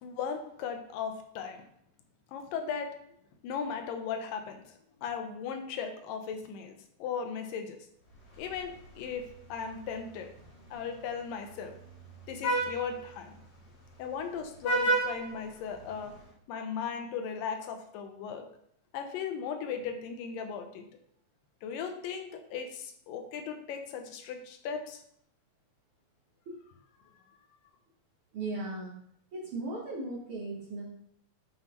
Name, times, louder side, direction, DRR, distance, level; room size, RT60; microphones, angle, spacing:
voice 1, 0.0-1.6 2.3-3.0 3.4-7.9 8.4-10.3 10.7-11.7 12.3-13.4 14.0-16.1 16.5-18.5 18.9-20.9 21.6-25.0 27.3-27.4, left 6 dB, 85° left, 6 dB, 2.5 m, -37 dB
Vehicle horn car horn honking, 8.1-16.2, right 1 dB, 45° left, 1.6 m, -36 dB
voice 2, 28.3-28.9 29.3-30.9, right 2 dB, 60° right, -4 dB, 1.5 m, -37 dB
9.2 x 5.9 x 3.0 m, 0.69 s
omnidirectional pair, 3.9 m